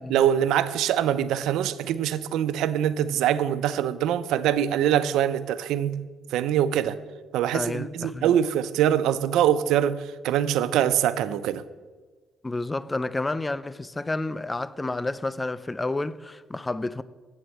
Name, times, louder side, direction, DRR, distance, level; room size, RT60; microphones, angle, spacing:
voice 1, 0.1-6.0 6.3-7.0 7.3-11.6, right 10 dB, 90° right, 0.5 m, -24 dB
voice 2, 7.5-8.4 12.4-17.0, left 2 dB, 20° left, 0.5 m, -30 dB
8.5 x 7.7 x 7.7 m
cardioid pair, 90°, 0 cm